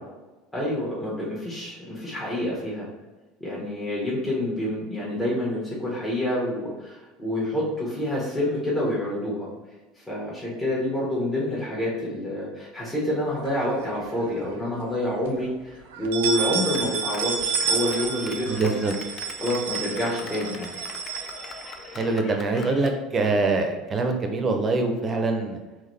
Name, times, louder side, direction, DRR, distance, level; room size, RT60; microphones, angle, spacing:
voice 1, 0.5-2.9 3.4-9.5 10.1-18.7 19.4-20.7, left 1 dB, 15° left, -7 dB, 1.3 m, -28 dB
sound 1, 13.5-14.4 14.8-14.9 15.2-15.3 15.9-22.1, right 6 dB, 70° right, 0.4 m, -30 dB
Clapping, 16.4-23.0, left 4 dB, 40° left, 0.5 m, -42 dB
voice 2, 18.5-18.9 21.9-25.6, right 3 dB, 30° right, 4 dB, 0.7 m, -24 dB
3.8 x 3.2 x 3.2 m, 1.2 s
figure-of-eight pair, 70°, 0 cm